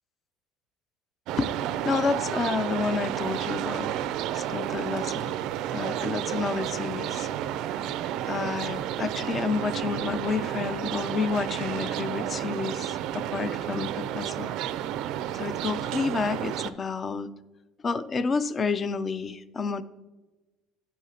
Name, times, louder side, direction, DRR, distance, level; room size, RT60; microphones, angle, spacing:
sound 1, 1.3-16.7, right 11 dB, 65° right, 0.3 m, -31 dB
voice 1, 1.4-4.1 4.3-5.3 5.7-7.3 8.3-14.5 15.3-17.3 17.8-19.8, left 5 dB, 25° left, 15 dB, 0.4 m, -30 dB
13.0 x 5.8 x 2.8 m, 1.1 s
cardioid pair, 130°, 0 cm